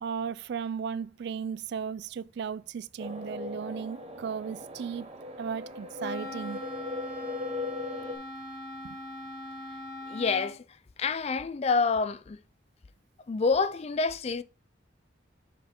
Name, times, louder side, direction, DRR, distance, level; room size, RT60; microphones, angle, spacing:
voice 1, 0.0-5.1 5.4-6.6 8.8-9.0, right 6 dB, 60° right, 0.3 m, -35 dB
sound 1, 3.0-8.2, left 3 dB, 30° right, 0.9 m, -39 dB
Wind instrument woodwind instrument, 6.0-10.6, left 1 dB, 50° left, 1.6 m, -41 dB
voice 2, 10.1-10.6 11.0-12.4 13.3-14.4, left 4 dB, 35° left, 0.3 m, -27 dB
6.1 x 4.4 x 4.3 m
head